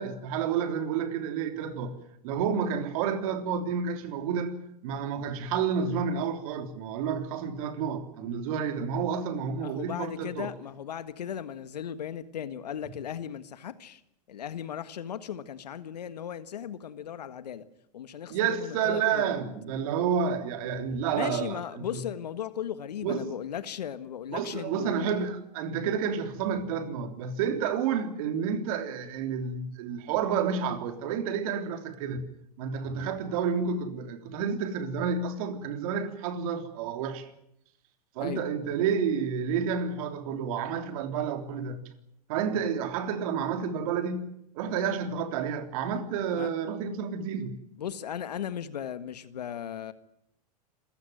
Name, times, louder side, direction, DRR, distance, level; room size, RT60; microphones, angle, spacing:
voice 1, 0.0-2.0 2.2-4.6 4.8-10.5 18.3-22.0 23.0-23.2 24.3-32.2 32.6-37.3 38.1-41.8 42.3-44.2 44.5-47.5, right 7 dB, 60° right, 3.4 m, -30 dB
voice 2, 9.6-14.0 14.3-17.6 17.9-19.4 21.1-25.3 38.2-38.4 46.3-46.5 47.8-49.9, left 9 dB, 80° left, 1.6 m, -37 dB
27.0 x 15.5 x 9.3 m
hypercardioid pair, 110°, 20 cm